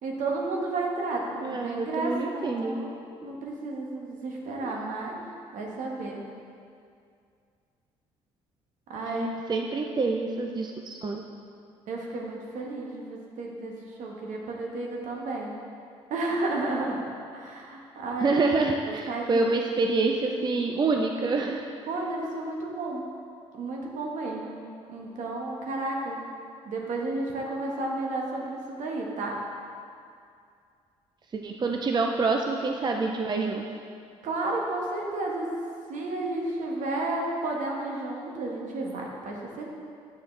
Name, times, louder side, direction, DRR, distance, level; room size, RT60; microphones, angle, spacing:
voice 1, 0.0-2.9 3.2-5.1 5.5-6.2 8.9-9.3 9.7-9.8 11.9-15.5 16.1-17.0 17.3-18.4 18.8-19.4 21.9-23.0 23.5-24.6 24.9-26.2 26.6-29.4 31.6-31.7 34.2-35.5 35.9-39.7, right 2 dB, 65° right, -1 dB, 1.3 m, -32 dB
voice 2, 1.4-2.8 4.6-4.7 9.1-11.2 18.2-21.6 31.3-33.6, right 3 dB, 30° right, 2 dB, 0.5 m, -27 dB
7.7 x 6.8 x 3.3 m, 2.3 s
hypercardioid pair, 60°, 14 cm